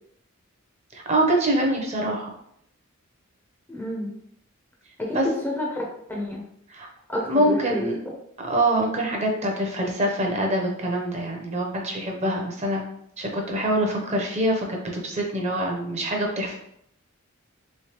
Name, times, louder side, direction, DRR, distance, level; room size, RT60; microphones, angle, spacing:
voice 1, 0.9-2.3 5.1-5.3 6.7-6.9 7.3-7.9 8.4-12.8 13.2-16.6, right 1 dB, 30° right, 0 dB, 0.6 m, -25 dB
voice 2, 3.7-4.1 5.0-6.4 7.1-7.8, left 1 dB, 10° left, -2 dB, 0.4 m, -29 dB
3.2 x 3.1 x 2.9 m, 0.73 s
head